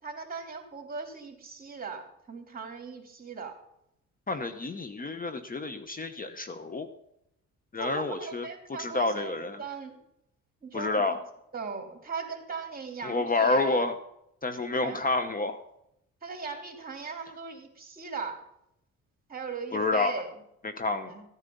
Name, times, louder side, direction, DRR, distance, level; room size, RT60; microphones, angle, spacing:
voice 1, 0.0-3.6 7.8-9.3 9.6-10.0 10.6-11.2 11.5-13.9 14.8-15.0 16.2-18.4 19.3-20.3 21.1-21.2, right 5 dB, 30° right, 3 dB, 3.1 m, -39 dB
voice 2, 4.3-6.9 7.7-9.6 10.7-11.2 13.0-13.9 14.4-15.6 19.7-20.2 20.6-21.1, left 3 dB, 30° left, 9 dB, 1.0 m, -29 dB
15.5 x 9.8 x 5.4 m, 0.79 s
cardioid pair, 90°, 30 cm